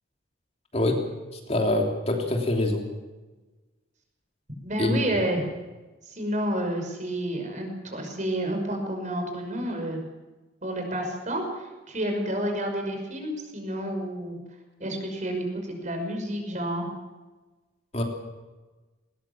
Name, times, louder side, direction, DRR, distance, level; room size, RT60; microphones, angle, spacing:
voice 1, 0.7-1.0 1.3-2.8 4.8-5.2 17.9-18.0, left 1 dB, 35° left, 2 dB, 3.2 m, -25 dB
voice 2, 4.6-5.5 6.1-10.0 10.6-14.4 14.8-16.9, right 1 dB, 40° right, 4 dB, 5.6 m, -30 dB
20.0 x 20.0 x 7.4 m, 1.2 s
head